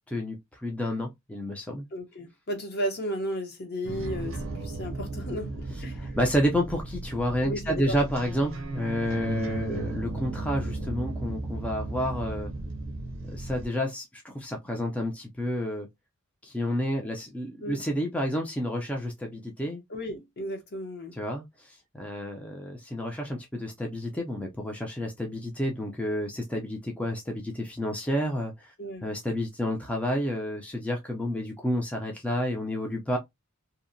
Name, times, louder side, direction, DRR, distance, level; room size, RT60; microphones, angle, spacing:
voice 1, 0.1-1.8 6.2-12.5 13.2-15.9 16.4-19.8 21.1-28.7 29.0-33.2, equal, 5° left, 0.4 m, -30 dB
voice 2, 1.9-6.2 7.4-8.0 9.7-9.9 17.6-17.8 19.9-21.2 28.8-29.1, equal, 50° left, 0.8 m, -34 dB
sound 1, 3.8-13.7, right 2 dB, 70° right, 0.5 m, -35 dB
2.7 x 2.1 x 2.5 m
head